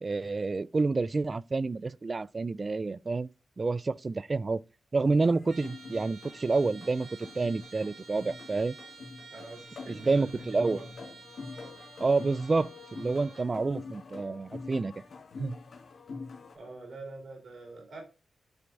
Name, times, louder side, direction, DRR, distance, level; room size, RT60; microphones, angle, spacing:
voice 1, 0.0-3.3 3.6-4.6 4.9-7.1 7.4-8.8 10.0-10.8 12.0-14.9 15.4-15.6, right 3 dB, 40° right, 0.3 m, -28 dB
sound 1, 5.0-16.6, left 4 dB, 70° left, 1.7 m, -45 dB
Trumpet, 5.5-13.5, right 4 dB, 85° right, 1.9 m, -51 dB
voice 2, 9.3-10.9 16.5-18.0, right 3 dB, 60° right, 3.9 m, -45 dB
11.5 x 4.5 x 2.5 m
cardioid pair, 70°, 0 cm